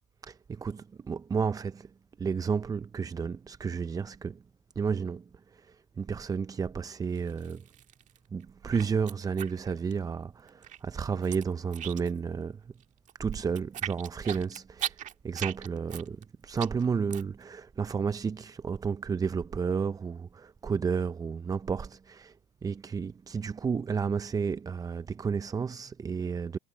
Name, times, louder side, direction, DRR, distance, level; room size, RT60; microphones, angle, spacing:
voice 1, 0.2-1.9 2.2-4.4 4.8-5.2 5.5-7.6 8.3-12.6 13.2-15.0 15.2-22.3 22.6-26.6, right 6 dB, 20° right, 0.6 m, -32 dB
sound 1, 7.2-8.2 8.4-10.2 10.5-12.3 12.6-17.4, right 11 dB, 45° right, 1.8 m, -38 dB
hypercardioid pair, 85°, 17 cm